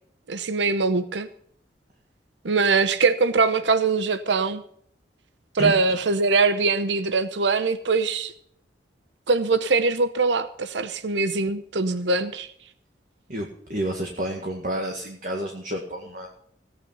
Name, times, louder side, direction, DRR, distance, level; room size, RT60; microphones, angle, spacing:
voice 1, 0.3-1.3 2.4-4.6 5.5-8.3 9.3-12.5, right 4 dB, 75° right, 12 dB, 0.8 m, -22 dB
voice 2, 5.6-6.0 13.3-16.3, right 1 dB, 45° right, 1 dB, 1.9 m, -30 dB
17.0 x 9.1 x 5.3 m, 0.67 s
head